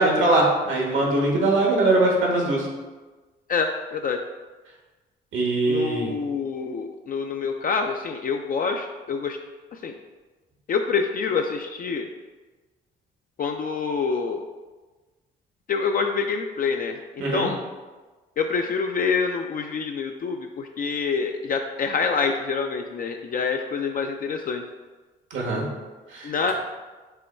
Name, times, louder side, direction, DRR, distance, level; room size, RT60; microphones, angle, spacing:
voice 1, 0.0-2.7 5.3-6.1 17.2-17.5 25.3-25.6 26.1-26.5, right 2 dB, 75° right, -1 dB, 1.2 m, -21 dB
voice 2, 3.5-4.2 5.7-9.4 9.7-9.9 10.7-12.1 13.4-14.4 15.7-17.6 18.4-24.6 26.2-26.5, left 5 dB, 45° left, 3 dB, 0.4 m, -26 dB
5.4 x 2.2 x 4.2 m, 1.3 s
supercardioid pair, 65°, 20 cm